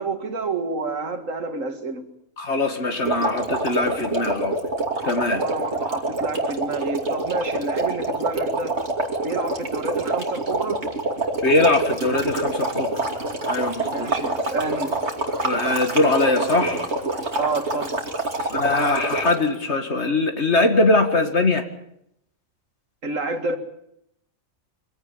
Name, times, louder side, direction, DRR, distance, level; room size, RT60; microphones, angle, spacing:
voice 1, 0.0-2.1 5.3-8.8 9.2-10.9 13.9-15.0 17.4-17.9 23.0-23.6, right 3 dB, 70° right, 6 dB, 2.4 m, -29 dB
voice 2, 2.4-4.6 5.0-5.4 11.4-12.9 13.5-14.1 15.4-16.9 18.5-21.7, left 2 dB, 55° left, 7 dB, 2.2 m, -21 dB
sound 1, 3.0-19.5, right 2 dB, 55° right, 3.1 m, -26 dB
23.5 x 17.0 x 8.6 m, 0.77 s
omnidirectional pair, 1.4 m